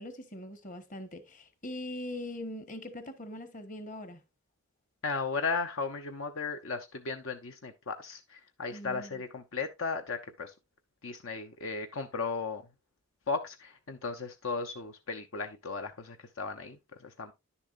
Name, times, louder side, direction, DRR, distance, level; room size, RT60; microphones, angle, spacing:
voice 1, 0.0-4.2 8.7-9.2, left 1 dB, 40° left, 1.3 m, -41 dB
voice 2, 5.0-10.5 11.0-12.6 13.3-17.3, left 4 dB, 70° left, 0.8 m, -36 dB
10.5 x 7.0 x 2.5 m
head